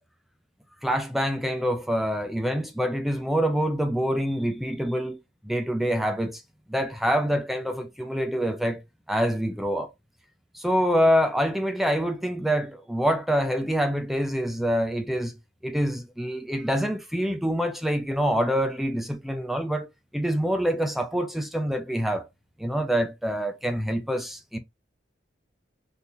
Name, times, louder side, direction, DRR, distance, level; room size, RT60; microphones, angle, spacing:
voice 1, 0.8-5.2 5.4-6.4 6.7-8.8 9.1-9.9 10.5-15.3 15.6-19.9 20.1-22.3 22.6-24.6, equal, ahead, 0.3 m, -26 dB
3.8 x 2.7 x 2.5 m
head